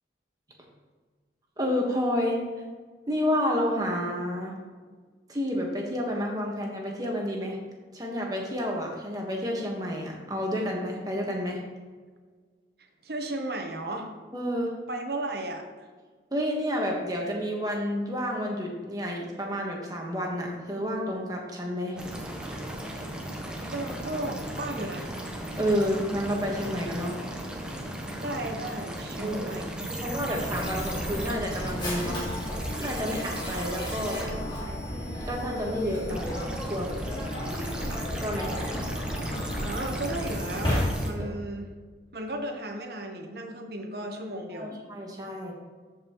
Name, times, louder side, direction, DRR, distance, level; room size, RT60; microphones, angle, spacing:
voice 1, 1.6-2.4 3.1-4.5 5.3-7.6 7.9-11.6 14.3-14.7 16.3-22.0 25.6-27.1 29.2-29.5 29.9-32.2 32.8-34.3 35.3-37.0 38.2-38.5 41.2-41.3 44.3-45.5, equal, 20° right, -1 dB, 1.4 m, -30 dB
voice 2, 13.0-14.1 14.9-15.7 23.7-25.1 28.2-29.9 39.6-41.7 42.1-44.7, right 1 dB, 60° right, 4 dB, 1.1 m, -34 dB
sound 1, 22.0-41.1, right 1 dB, 5° right, 0.9 m, -37 dB
Mechanisms, 30.2-41.3, left 1 dB, 25° left, 2.2 m, -33 dB
13.5 x 5.3 x 3.1 m, 1.5 s
head